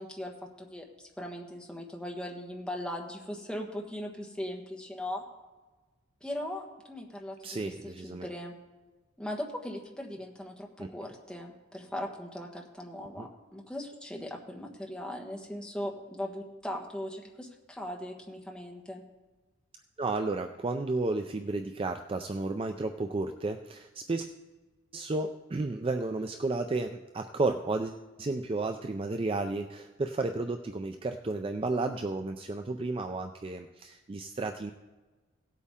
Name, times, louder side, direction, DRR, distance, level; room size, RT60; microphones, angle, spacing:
voice 1, 0.0-5.2 6.2-7.4 7.6-8.5 9.2-19.0, left 1 dB, 5° left, 0 dB, 1.3 m, -39 dB
voice 2, 7.4-8.3 10.8-10.9 20.0-24.3 24.9-34.7, right 3 dB, 25° right, 6 dB, 0.4 m, -32 dB
17.0 x 8.3 x 3.7 m, 1.2 s
head